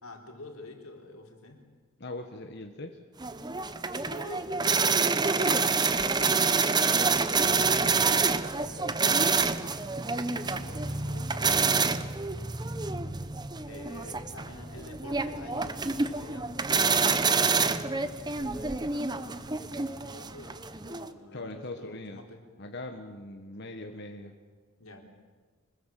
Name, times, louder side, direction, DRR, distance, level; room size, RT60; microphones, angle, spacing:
voice 1, 0.0-1.6 3.9-7.4 7.9-9.4 10.8-11.9 13.7-16.5 17.2-22.4 24.8-25.0, left 2 dB, 85° left, 2 dB, 4.0 m, -48 dB
voice 2, 2.0-3.0 10.0-10.9 21.3-22.2 22.6-24.3, left 2 dB, 50° left, 4 dB, 1.4 m, -41 dB
sound 1, 3.2-21.1, right 4 dB, 20° right, 0.8 m, -27 dB
sound 2, 12.7-20.5, equal, 85° right, 5.8 m, -53 dB
25.5 x 21.5 x 7.7 m, 1.5 s
head